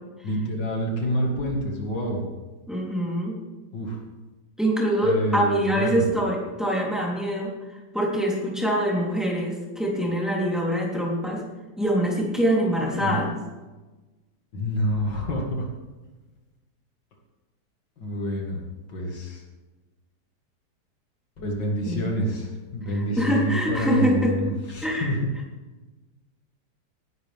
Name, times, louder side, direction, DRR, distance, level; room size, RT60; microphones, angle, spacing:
voice 1, 0.2-2.2 3.7-4.0 5.0-6.1 13.0-13.3 14.5-15.7 18.0-18.6 18.9-19.4 21.4-25.2, equal, 80° left, 0 dB, 2.6 m, -27 dB
voice 2, 2.7-3.4 4.6-7.5 7.9-11.4 11.8-13.3 21.9-22.1 22.9-24.3 24.8-25.1, equal, ahead, -4 dB, 3.4 m, -24 dB
18.5 x 11.5 x 3.6 m, 1.2 s
omnidirectional pair, 1.9 m